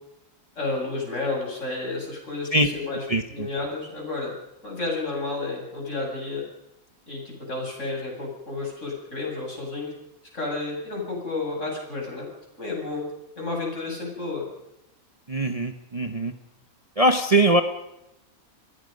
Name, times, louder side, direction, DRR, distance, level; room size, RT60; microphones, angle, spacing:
voice 1, 0.6-4.3 4.6-6.4 7.1-9.9 10.3-12.3 12.6-13.0 13.4-14.4, left 3 dB, 55° left, -1 dB, 8.1 m, -31 dB
voice 2, 3.1-3.5 15.3-16.3 17.0-17.6, right 1 dB, 25° right, 7 dB, 1.0 m, -21 dB
29.0 x 19.0 x 5.4 m, 0.88 s
omnidirectional pair, 1.5 m